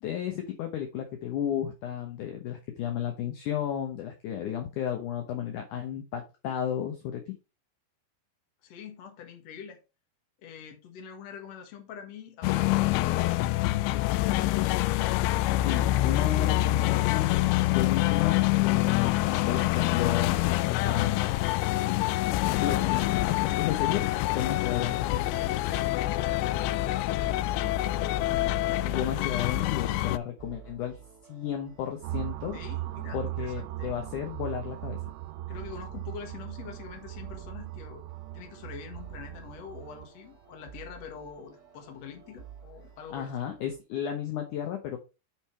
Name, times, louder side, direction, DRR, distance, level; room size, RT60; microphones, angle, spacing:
voice 1, 0.0-7.4 15.5-20.5 20.8-21.4 22.6-25.0 28.8-31.0 31.3-32.6 33.1-35.0 43.1-45.0, left 10 dB, 75° left, 1.9 m, -33 dB
voice 2, 8.6-9.8 10.4-13.6 25.2-27.5 32.5-33.9 35.5-38.0 38.3-43.5, left 7 dB, 55° left, 1.9 m, -45 dB
sound 1, 12.4-30.2, left 16 dB, 90° left, 2.2 m, -26 dB
sound 2, 30.4-43.8, right 7 dB, 35° right, 1.5 m, -51 dB
sound 3, 32.0-40.1, right 17 dB, 90° right, 2.8 m, -38 dB
7.5 x 5.3 x 4.7 m
omnidirectional pair, 4.9 m